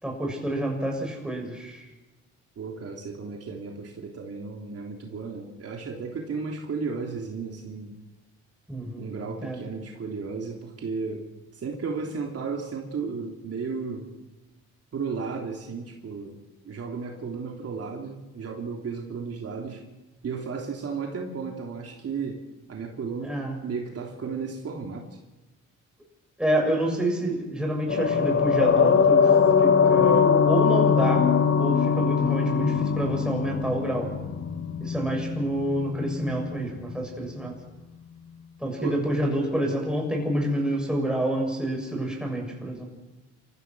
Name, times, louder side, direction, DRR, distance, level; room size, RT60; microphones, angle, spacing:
voice 1, 0.0-1.9 8.7-9.1 9.4-9.6 23.2-23.6 26.4-29.3 29.6-34.1 34.8-37.6 38.6-42.9, right 1 dB, 5° right, 0 dB, 7.3 m, -28 dB
voice 2, 2.6-7.9 8.9-11.3 11.5-14.1 14.9-19.8 20.2-22.4 22.7-23.3 23.6-25.2 38.8-39.0, right 5 dB, 50° right, 0 dB, 3.4 m, -34 dB
Passing Clouds (wind), 27.9-36.5 36.8-36.9, left 6 dB, 45° left, 2.2 m, -22 dB
28.5 x 15.0 x 6.3 m, 1.1 s
cardioid pair, 90°, 30 cm